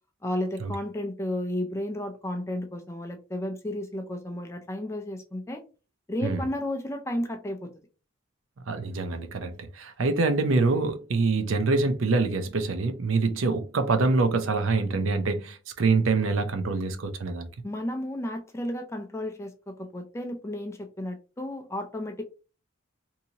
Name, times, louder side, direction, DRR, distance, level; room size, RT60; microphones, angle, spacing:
voice 1, 0.2-5.6 6.1-7.7 17.6-22.2, left 1 dB, 15° left, 0.4 m, -33 dB
voice 2, 8.7-17.5, right 3 dB, 80° right, 0.5 m, -25 dB
2.8 x 2.7 x 2.7 m
head